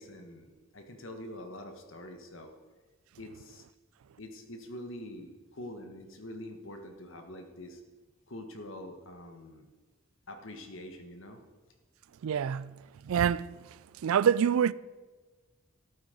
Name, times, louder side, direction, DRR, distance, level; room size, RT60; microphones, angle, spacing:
voice 1, 0.0-2.5 3.2-3.6 4.2-7.8 8.3-9.7 10.3-11.4, left 1 dB, 70° left, 1.4 m, -45 dB
voice 2, 12.2-12.7 13.1-13.5 14.0-14.7, right 8 dB, 85° right, 0.3 m, -25 dB
13.0 x 8.4 x 5.2 m
head